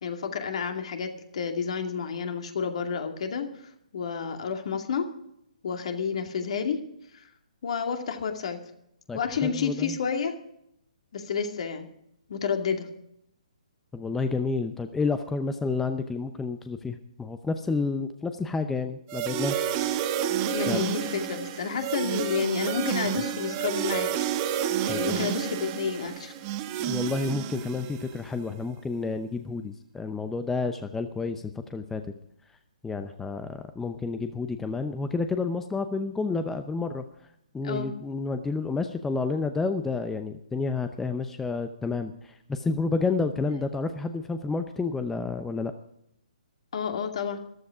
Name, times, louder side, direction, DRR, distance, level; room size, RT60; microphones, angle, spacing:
voice 1, 0.0-3.5 3.9-5.1 5.6-6.8 7.1-7.3 7.6-8.6 9.1-10.4 11.1-11.9 12.3-12.9 20.5-24.1 24.8-26.3 37.6-37.9 46.7-47.4, left 6 dB, 55° left, 5 dB, 2.3 m, -30 dB
voice 2, 9.1-10.0 13.9-19.7 20.7-20.8 24.9-25.3 26.8-31.4 31.7-32.0 32.8-37.0 37.5-45.7, left 4 dB, 5° left, 8 dB, 0.7 m, -30 dB
sound 1, 19.1-28.2, right 10 dB, 30° right, 1.3 m, -30 dB
14.5 x 13.0 x 4.9 m, 0.75 s
figure-of-eight pair, 135°, 4 cm